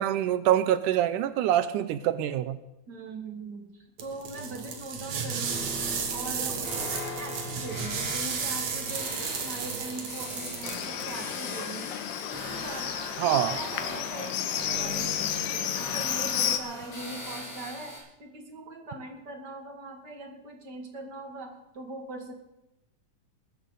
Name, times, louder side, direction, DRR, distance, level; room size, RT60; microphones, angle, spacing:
voice 1, 0.0-2.6 13.2-13.5, right 11 dB, 80° right, 13 dB, 2.1 m, -25 dB
voice 2, 2.9-5.8 6.1-11.9 12.2-15.2 15.5-17.9 18.2-22.3, right 2 dB, 35° right, 2 dB, 2.4 m, -41 dB
sound 1, 4.0-11.2, right 6 dB, 60° right, 2.7 m, -33 dB
sound 2, 5.5-18.0, left 1 dB, 50° left, 8.8 m, -40 dB
Livestock farm animals working animals, 10.6-16.6, left 10 dB, 90° left, 2.6 m, -32 dB
21.5 x 13.0 x 4.0 m, 0.90 s
omnidirectional pair, 3.7 m